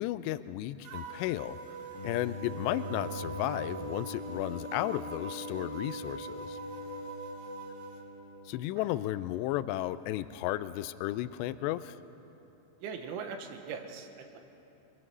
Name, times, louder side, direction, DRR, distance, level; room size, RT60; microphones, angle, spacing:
voice 1, 0.0-1.6 2.0-6.6 8.5-12.0, left 14 dB, 80° left, 13 dB, 2.6 m, -34 dB
sound 1, 0.8-8.0, right 3 dB, 60° right, 2.2 m, -43 dB
Bowed string instrument, 1.9-9.2, left 1 dB, 60° left, 2.9 m, -43 dB
voice 2, 12.8-14.4, right 6 dB, 85° right, 5 dB, 3.8 m, -40 dB
25.5 x 20.0 x 6.1 m, 2.9 s
omnidirectional pair, 5.4 m